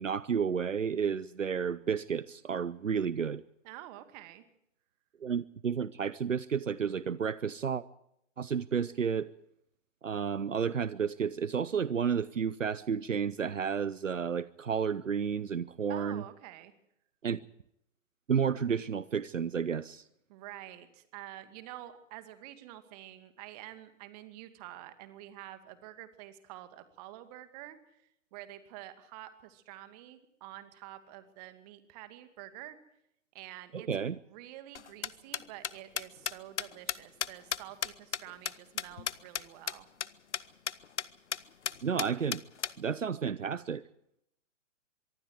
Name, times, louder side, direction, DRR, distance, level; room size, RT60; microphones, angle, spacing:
voice 1, 0.0-3.4 5.2-7.8 8.4-9.3 10.0-16.2 17.2-17.4 18.3-20.0 33.7-34.2 41.8-42.4 42.8-43.8, right 7 dB, 75° right, 18 dB, 0.8 m, -31 dB
voice 2, 3.6-4.4 15.9-16.7 20.3-27.8 28.3-32.8 33.3-39.9, right 14 dB, 30° right, 10 dB, 2.4 m, -48 dB
sound 1, 34.7-39.4 39.7-39.8 40.0-40.1 40.3-40.4 40.7-41.0 41.3-41.4 41.6-42.7, left 8 dB, 65° left, 1.0 m, -34 dB
25.0 x 23.5 x 4.7 m, 0.77 s
figure-of-eight pair, 115°, 38 cm